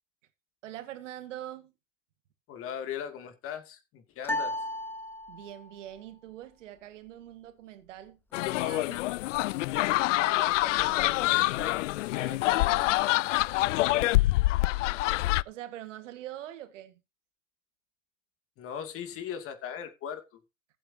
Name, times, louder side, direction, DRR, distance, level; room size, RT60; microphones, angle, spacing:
voice 1, 0.6-1.7 5.3-9.1 15.4-17.0, right 12 dB, 70° right, 1.9 m, -43 dB
voice 2, 2.5-4.5 10.1-13.3 18.6-20.4, left 8 dB, 35° left, 2.6 m, -39 dB
sound 1, 4.2-5.7, left 1 dB, 5° left, 1.2 m, -34 dB
sound 2, 8.3-15.4, left 18 dB, 70° left, 0.5 m, -26 dB
15.5 x 8.4 x 2.9 m
hypercardioid pair, 125°, 38 cm